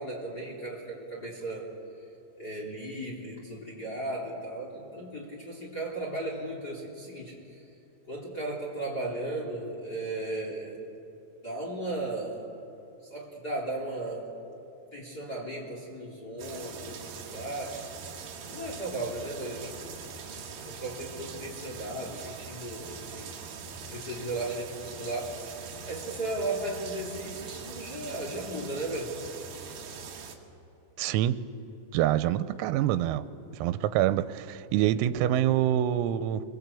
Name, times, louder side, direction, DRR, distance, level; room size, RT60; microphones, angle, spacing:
voice 1, 0.0-1.7 2.4-7.6 8.1-10.8 11.4-12.5 13.1-14.3 14.9-18.2 18.5-23.3 23.9-29.2 29.6-29.8, right 2 dB, 25° left, -2 dB, 3.0 m, -36 dB
sound 1, 16.4-30.4, right 6 dB, 55° right, 2.9 m, -42 dB
voice 2, 31.0-31.4 31.9-33.3 33.5-36.4, right 12 dB, 90° right, 12 dB, 3.5 m, -26 dB
28.5 x 23.0 x 8.4 m, 2.7 s
omnidirectional pair, 6.0 m